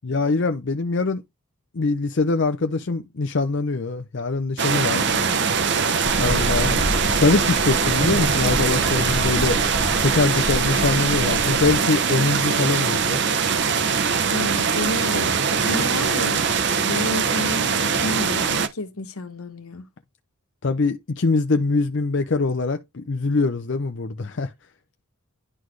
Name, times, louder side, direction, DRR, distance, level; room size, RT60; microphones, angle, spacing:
voice 1, 0.0-1.2 1.7-5.0 6.2-6.8 7.2-9.6 10.0-13.2 20.6-24.5, left 3 dB, 55° left, 0.6 m, -23 dB
sound 1, 4.6-18.7, right 6 dB, 50° right, 0.8 m, -22 dB
voice 2, 4.9-5.4 6.6-6.9 14.3-16.4 16.9-19.9, left 2 dB, 80° left, 1.3 m, -31 dB
sound 2, 6.0-11.8, left 1 dB, 25° left, 1.7 m, -29 dB
11.0 x 4.1 x 3.2 m
head